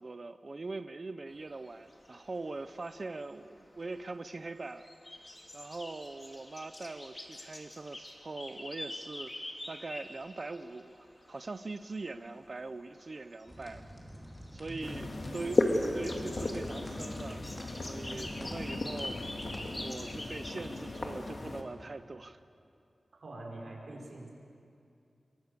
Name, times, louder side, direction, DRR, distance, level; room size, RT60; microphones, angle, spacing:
voice 1, 0.0-4.9 5.5-13.8 14.5-17.5 17.9-19.4 19.7-22.4, right 3 dB, 45° right, 10 dB, 0.7 m, -42 dB
sound 1, 1.3-20.7, left 1 dB, 25° left, 2.6 m, -47 dB
sound 2, 13.5-19.7, equal, 10° left, 4.8 m, -48 dB
voice 2, 14.6-15.1 23.2-24.3, right 1 dB, 75° right, -1 dB, 5.2 m, -45 dB
sound 3, 14.8-21.6, left 2 dB, 55° left, 2.3 m, -35 dB
27.5 x 23.0 x 6.8 m, 2.5 s
wide cardioid pair, 100°, 0 cm